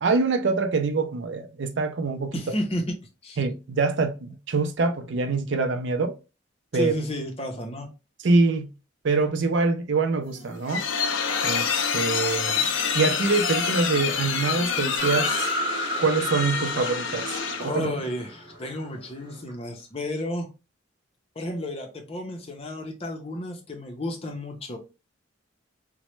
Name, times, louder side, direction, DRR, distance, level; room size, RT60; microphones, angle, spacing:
voice 1, 0.0-2.4 3.4-6.1 6.7-6.9 8.2-8.7 9.0-10.8 11.4-12.7 12.9-15.5 16.0-17.9, right 3 dB, 65° right, 0.5 m, -25 dB
voice 2, 2.3-2.9 3.2-3.4 6.7-7.9 17.6-20.5 21.4-24.8, left 1 dB, 30° left, 0.6 m, -32 dB
sound 1, 10.3-17.8, left 6 dB, 80° left, 0.4 m, -27 dB
sound 2, 15.0-19.5, equal, 25° right, 0.8 m, -32 dB
3.0 x 2.1 x 3.0 m
head